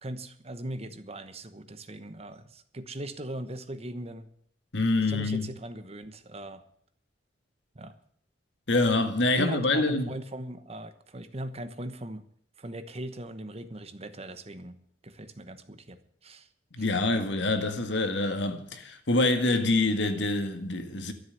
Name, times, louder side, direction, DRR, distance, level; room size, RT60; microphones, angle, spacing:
voice 1, 0.0-4.3 5.1-6.6 7.7-8.0 9.4-12.2 12.6-14.8 15.0-16.5 16.8-16.9, right 1 dB, 35° right, 1.1 m, -39 dB
voice 2, 4.7-5.5 8.7-10.1 16.7-21.1, left 2 dB, 65° left, 1.9 m, -26 dB
13.0 x 7.9 x 10.0 m
head